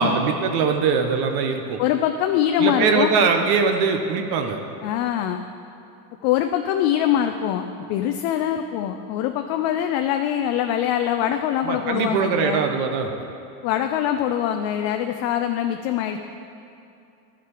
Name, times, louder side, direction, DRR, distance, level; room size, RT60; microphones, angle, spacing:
voice 1, 0.0-1.8 2.6-4.6 11.6-13.1, right 5 dB, 50° right, 5 dB, 0.8 m, -21 dB
voice 2, 1.8-3.1 4.8-5.4 6.2-12.6 13.6-16.2, left 10 dB, 55° left, 6 dB, 0.5 m, -23 dB
12.0 x 5.8 x 4.8 m, 2.6 s
supercardioid pair, 115°, 49 cm